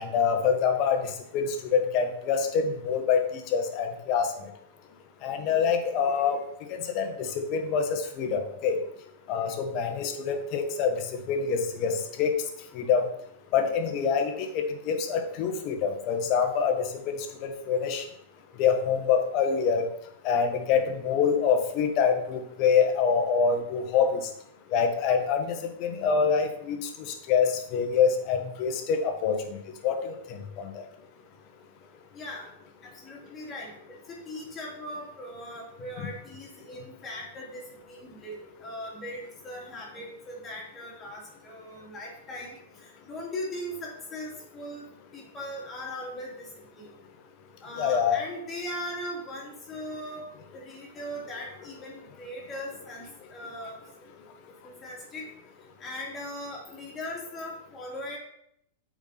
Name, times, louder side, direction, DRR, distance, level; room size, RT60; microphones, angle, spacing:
voice 1, 0.0-4.3 5.2-6.4 6.7-8.8 9.3-10.9 11.3-12.3 12.7-13.0 13.5-17.1 17.4-18.0 18.6-19.8 20.2-24.2 24.7-26.8 27.1-29.4 29.8-30.1 30.6-30.7 47.8-48.2, left 6 dB, 45° left, 6 dB, 1.4 m, -25 dB
voice 2, 32.1-32.5 32.8-46.9 47.6-50.3 50.5-53.8 54.6-55.3 55.8-58.2, left 1 dB, 25° left, -3 dB, 2.8 m, -39 dB
8.1 x 4.8 x 4.2 m, 0.74 s
hypercardioid pair, 110°, 0 cm